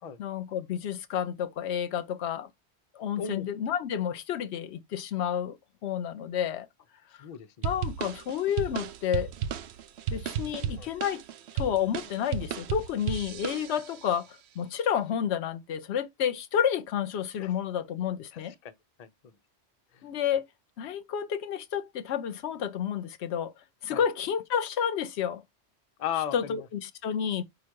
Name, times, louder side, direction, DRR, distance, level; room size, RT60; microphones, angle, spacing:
voice 1, 0.2-2.5 2.9-5.6 5.8-6.7 7.1-7.3 7.6-9.3 10.1-11.2 11.5-18.5 20.0-20.5 20.8-23.5 23.8-25.4 26.3-27.4, left 8 dB, 75° left, 0.9 m, -30 dB
voice 2, 3.2-3.5 7.1-7.7 10.8-10.9 17.4-17.5 18.3-18.7 19.0-19.3 19.9-20.0 23.9-24.0 26.0-26.7, left 9 dB, 45° left, 0.5 m, -36 dB
sound 1, 7.6-14.1, right 8 dB, 70° right, 0.8 m, -34 dB
4.8 x 2.4 x 4.4 m
omnidirectional pair, 1.2 m